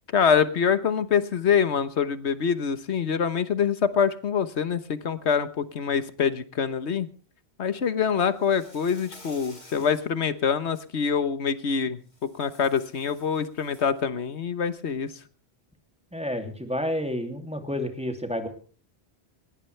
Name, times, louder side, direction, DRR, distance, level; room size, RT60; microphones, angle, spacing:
voice 1, 0.1-7.1 7.6-15.1, left 7 dB, 90° left, 13 dB, 1.4 m, -25 dB
Insect, 8.3-10.1 10.6-10.8 12.1-14.0, left 1 dB, 50° left, 6.5 m, -51 dB
voice 2, 16.1-18.5, left 1 dB, 5° right, 5 dB, 2.6 m, -30 dB
20.0 x 17.0 x 3.3 m, 0.41 s
omnidirectional pair, 1.1 m